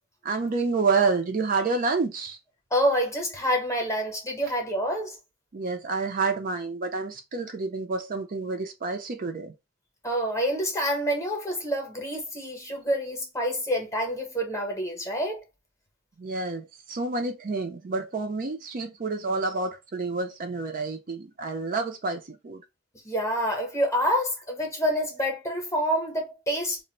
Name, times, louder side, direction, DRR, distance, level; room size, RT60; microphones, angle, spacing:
voice 1, 0.2-2.4 5.5-9.5 16.2-22.6, right 4 dB, 45° right, 0.5 m, -28 dB
voice 2, 2.7-5.2 10.0-15.4 23.0-26.8, equal, 15° left, 0.8 m, -27 dB
2.4 x 2.1 x 3.8 m
head